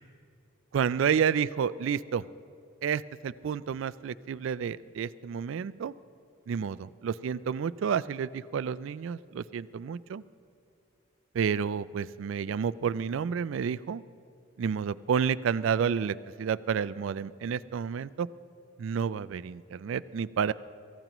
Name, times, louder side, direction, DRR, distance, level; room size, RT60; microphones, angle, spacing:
voice 1, 0.7-2.2 2.8-5.9 6.5-10.2 11.3-14.0 14.6-18.3 18.8-20.5, right 7 dB, 70° right, 15 dB, 0.3 m, -30 dB
27.5 x 15.0 x 3.0 m, 2.6 s
head